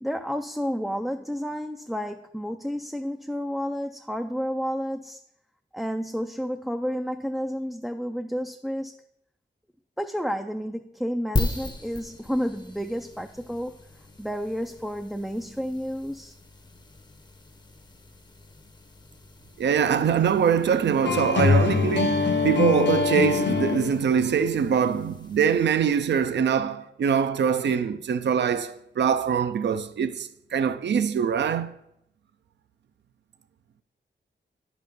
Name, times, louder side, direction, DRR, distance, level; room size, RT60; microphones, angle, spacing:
voice 1, 0.0-5.2 5.7-8.9 10.0-13.7 14.2-16.3, equal, ahead, 0.3 m, -31 dB
sound 1, 11.4-26.1, left 2 dB, 20° left, 0.7 m, -38 dB
voice 2, 19.6-31.7, right 7 dB, 65° right, 0.5 m, -23 dB
sound 2, 21.0-24.3, left 5 dB, 65° left, 0.7 m, -23 dB
10.5 x 6.0 x 3.6 m
wide cardioid pair, 115°, 20 cm